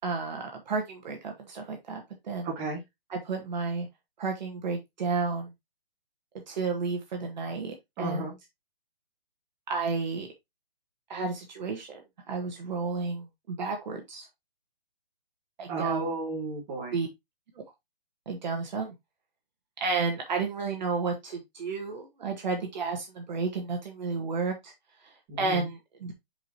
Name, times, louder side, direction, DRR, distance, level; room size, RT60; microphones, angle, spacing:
voice 1, 0.0-2.5 3.1-3.9 4.2-5.5 6.5-8.4 9.7-10.3 11.1-12.0 12.3-14.3 15.6-16.1 16.9-17.1 18.3-18.9 19.8-24.7 25.0-26.1, right 4 dB, 50° right, 1.8 m, -32 dB
voice 2, 2.4-2.8 8.0-8.3 15.7-16.9 25.3-25.7, right 3 dB, 20° right, 2.4 m, -33 dB
7.5 x 5.0 x 3.0 m
hypercardioid pair, 155°, 30 cm